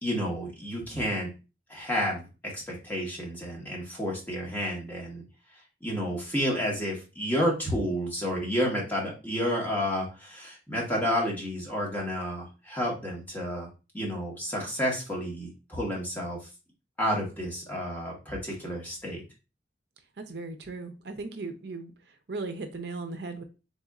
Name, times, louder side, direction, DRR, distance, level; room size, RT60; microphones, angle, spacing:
voice 1, 0.0-1.3 1.7-5.2 5.8-13.7 13.9-16.4 17.0-19.2, equal, 10° left, -3 dB, 1.3 m, -30 dB
voice 2, 20.2-21.9 22.3-23.4, right 3 dB, 65° right, 6 dB, 0.6 m, -37 dB
4.1 x 3.4 x 2.4 m, 0.30 s
head